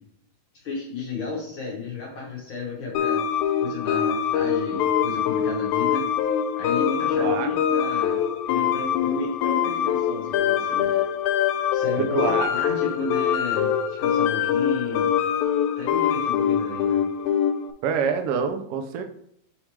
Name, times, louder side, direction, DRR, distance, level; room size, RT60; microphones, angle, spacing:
voice 1, 0.5-3.2 3.6-6.1 6.6-8.2 8.5-10.9 11.7-13.7 14.0-15.1 15.8-17.0, left 3 dB, 55° left, -3 dB, 1.5 m, -32 dB
sound 1, 2.9-17.7, left 9 dB, 85° left, 1.9 m, -24 dB
voice 2, 7.1-7.5 12.0-12.5 17.8-19.0, right 6 dB, 85° right, 6 dB, 1.3 m, -26 dB
6.2 x 5.1 x 3.3 m, 0.71 s
omnidirectional pair, 3.3 m